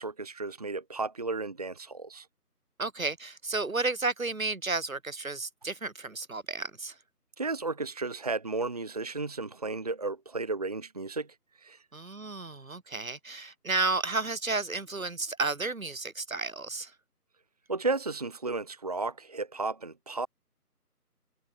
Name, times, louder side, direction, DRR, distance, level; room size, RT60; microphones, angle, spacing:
voice 1, 0.0-2.3 7.4-11.3 11.6-11.8 17.7-20.3, right 3 dB, 25° right, 2.0 m, -33 dB
voice 2, 2.8-6.9 11.9-16.9, right 3 dB, 60° right, 5.3 m, -32 dB
figure-of-eight pair, 170°, 47 cm